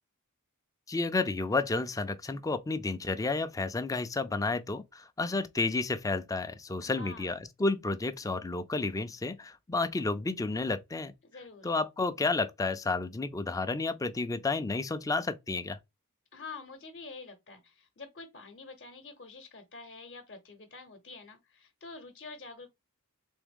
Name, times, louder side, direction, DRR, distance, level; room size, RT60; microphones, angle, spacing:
voice 1, 0.9-11.1 11.6-15.8, left 3 dB, 15° left, 0.4 m, -31 dB
voice 2, 6.8-7.3 11.2-11.7 16.3-22.7, left 3 dB, 50° left, 0.8 m, -47 dB
3.5 x 3.5 x 3.5 m
head